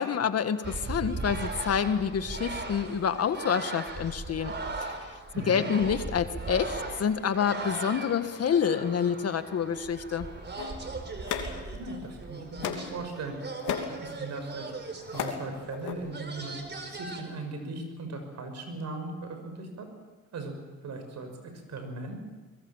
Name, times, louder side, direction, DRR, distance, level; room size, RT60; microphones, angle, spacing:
voice 1, 0.0-5.2 5.5-10.3, left 7 dB, 55° left, 10 dB, 1.6 m, -28 dB
sound 1, 0.6-17.2, right 3 dB, 35° right, 4.3 m, -38 dB
voice 2, 5.3-5.7 11.7-13.5 13.9-14.7 15.1-19.9 20.3-20.5 20.8-22.2, right 2 dB, 65° right, 6 dB, 6.4 m, -38 dB
sound 2, 10.6-12.1 12.6-13.0 13.4-14.0 14.7-15.4 15.7-15.9, left 8 dB, 85° left, 3.1 m, -34 dB
24.5 x 21.5 x 7.3 m, 1.3 s
cardioid pair, 90°, 30 cm